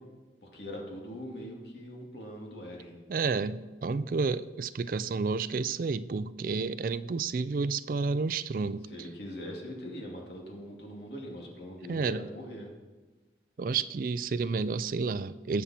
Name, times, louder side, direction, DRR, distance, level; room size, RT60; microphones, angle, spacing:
voice 1, 0.4-3.0 8.9-12.7, equal, 65° left, -1 dB, 2.5 m, -42 dB
voice 2, 3.1-8.9 11.9-12.3 13.6-15.6, right 4 dB, 50° right, 15 dB, 0.4 m, -30 dB
19.5 x 7.3 x 4.4 m, 1.3 s
head